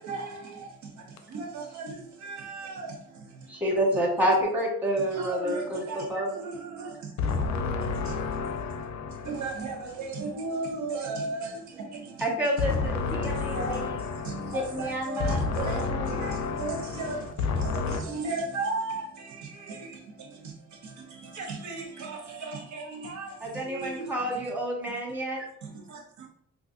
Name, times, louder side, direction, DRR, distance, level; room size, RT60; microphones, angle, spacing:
voice 1, 0.0-3.5 5.0-7.5 7.8-8.4 9.2-12.6 13.2-24.5 25.6-26.3, right 3 dB, 70° right, 0 dB, 0.9 m, -37 dB
voice 2, 3.6-6.3 12.2-13.8 14.5-16.2 23.4-25.4, equal, 5° right, -4 dB, 1.3 m, -29 dB
voice 3, 7.2-9.4 12.6-14.8 15.2-18.0, left 4 dB, 65° left, 7 dB, 0.6 m, -30 dB
3.9 x 2.5 x 2.5 m, 0.71 s
cardioid pair, 90°, 30 cm